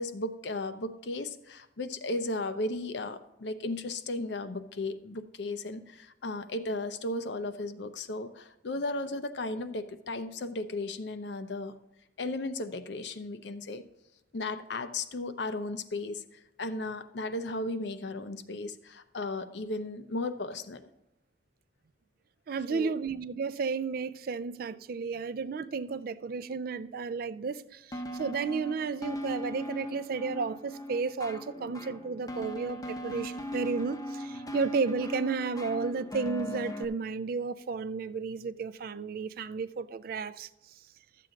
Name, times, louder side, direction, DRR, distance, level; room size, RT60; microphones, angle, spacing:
voice 1, 0.0-11.8 12.2-13.8 14.3-20.8 22.7-22.9, left 2 dB, 70° left, 0.6 m, -35 dB
voice 2, 22.5-40.5, right 5 dB, 55° right, 0.4 m, -33 dB
sound 1, 27.9-36.8, left 1 dB, 20° left, 0.7 m, -39 dB
12.5 x 7.6 x 3.8 m
head